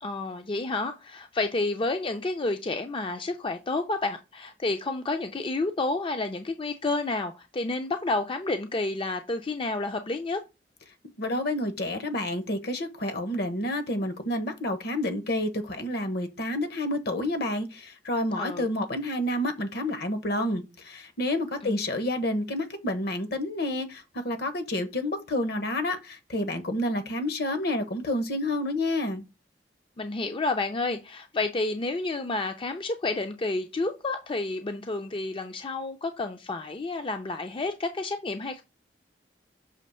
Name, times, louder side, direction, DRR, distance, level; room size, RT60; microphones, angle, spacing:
voice 1, 0.0-10.4 18.4-18.7 21.6-21.8 30.0-38.6, left 2 dB, 30° left, 0.5 m, -30 dB
voice 2, 11.2-29.2, left 1 dB, 65° left, 1.1 m, -29 dB
6.4 x 3.0 x 5.5 m
head